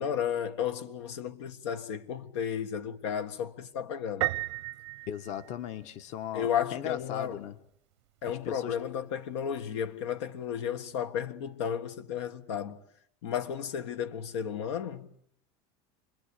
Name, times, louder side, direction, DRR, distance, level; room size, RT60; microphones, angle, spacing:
voice 1, 0.0-4.3 6.3-7.3 8.2-12.8 13.2-15.1, left 8 dB, 90° left, 1.6 m, -33 dB
Piano, 4.2-6.0, right 18 dB, 90° right, 1.0 m, -34 dB
voice 2, 5.1-7.6 8.3-8.8, left 10 dB, 55° left, 1.4 m, -38 dB
28.5 x 21.0 x 8.5 m
supercardioid pair, 115°, 14 cm